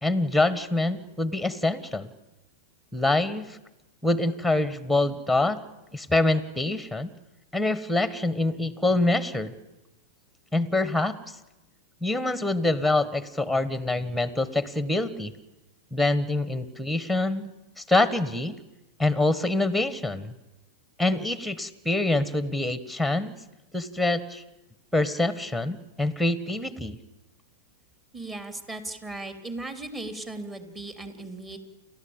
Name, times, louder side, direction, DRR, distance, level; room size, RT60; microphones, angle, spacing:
voice 1, 0.0-2.1 2.9-3.6 4.0-5.6 5.9-7.1 7.5-9.5 10.5-11.1 12.0-15.3 15.9-17.5 17.8-18.5 19.0-20.3 21.0-23.4 23.7-24.4 24.9-27.0, left 2 dB, ahead, 14 dB, 1.5 m, -25 dB
voice 2, 28.1-31.6, right 2 dB, 20° right, 8 dB, 3.2 m, -37 dB
30.0 x 12.5 x 8.9 m, 1.0 s
hypercardioid pair, 115°, 0 cm